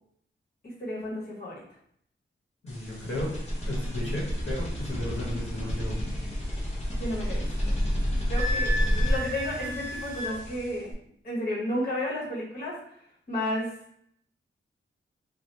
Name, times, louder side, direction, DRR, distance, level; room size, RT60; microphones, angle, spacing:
voice 1, 0.6-1.6 7.0-7.7 8.3-10.9 11.2-12.8 13.3-13.7, left 1 dB, 50° left, -6 dB, 1.2 m, -32 dB
voice 2, 2.6-3.3 3.6-6.1, left 1 dB, 90° left, -5 dB, 1.2 m, -34 dB
sound 1, 2.7-10.9, equal, 30° left, 0.8 m, -30 dB
Wind instrument woodwind instrument, 8.3-10.4, left 1 dB, 30° right, 1.0 m, -33 dB
2.9 x 2.2 x 3.3 m, 0.68 s
wide cardioid pair, 140°, 21 cm